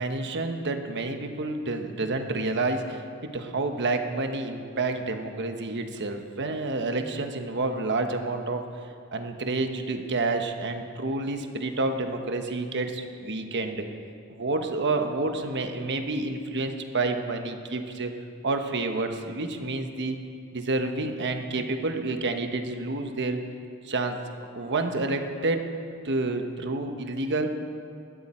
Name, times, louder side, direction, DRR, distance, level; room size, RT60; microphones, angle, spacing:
voice 1, 0.0-8.6 9.1-13.8 14.3-18.1 18.4-20.2 20.5-23.4 23.8-24.2 24.5-25.6 26.0-27.5, right 2 dB, 55° right, 5 dB, 1.2 m, -29 dB
19.5 x 12.5 x 4.4 m, 2.3 s
head